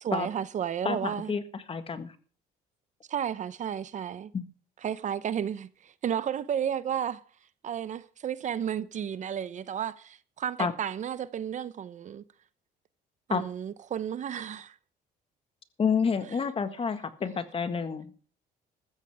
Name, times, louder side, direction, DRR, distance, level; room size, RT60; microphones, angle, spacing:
voice 1, 0.0-1.3 3.1-4.3 4.8-7.2 7.6-12.2 13.3-14.7, right 9 dB, 45° right, 0.8 m, -32 dB
voice 2, 0.8-2.1 4.3-4.4 10.6-10.7 13.3-13.4 15.8-18.3, left 6 dB, 35° left, 1.6 m, -29 dB
15.0 x 13.5 x 3.5 m
cardioid pair, 110°, 17 cm